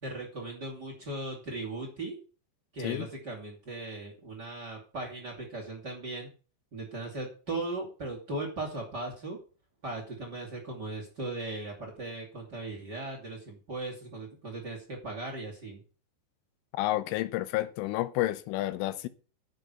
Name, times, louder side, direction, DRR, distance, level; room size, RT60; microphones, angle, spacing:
voice 1, 0.0-2.2 2.7-6.3 6.7-9.4 9.8-15.8, right 2 dB, 30° right, 2.4 m, -38 dB
voice 2, 16.7-19.1, left 16 dB, 90° left, 3.3 m, -30 dB
10.0 x 6.8 x 7.7 m
omnidirectional pair, 5.7 m